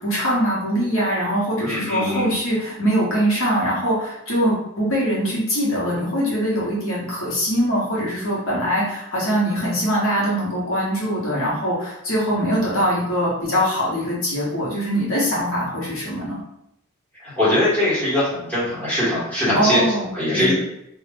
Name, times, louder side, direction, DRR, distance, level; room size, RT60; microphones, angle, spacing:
voice 1, 0.0-16.4 19.5-20.1 20.3-20.5, equal, 65° left, -6 dB, 1.0 m, -22 dB
voice 2, 1.6-2.3 17.2-20.5, left 1 dB, 10° left, -11 dB, 1.3 m, -21 dB
2.5 x 2.3 x 3.4 m, 0.80 s
head